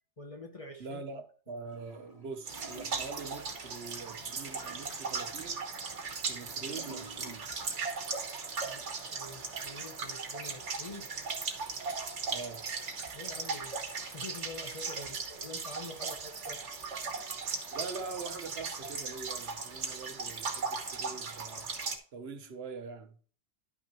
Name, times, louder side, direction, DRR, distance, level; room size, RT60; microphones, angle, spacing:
voice 1, 0.2-1.0 8.6-8.8 9.1-11.1 13.1-16.6, left 2 dB, 35° left, 0.8 m, -46 dB
voice 2, 0.8-5.6 6.2-7.5 12.3-12.7 17.7-21.7 22.1-23.1, right 4 dB, 65° right, 1.1 m, -43 dB
Gurgling / Toilet flush, 1.7-7.7 8.0-8.1, right 1 dB, 55° left, 2.6 m, -53 dB
sound 1, 2.5-22.0, right 4 dB, 80° right, 1.4 m, -38 dB
11.0 x 5.8 x 3.0 m
omnidirectional pair, 1.2 m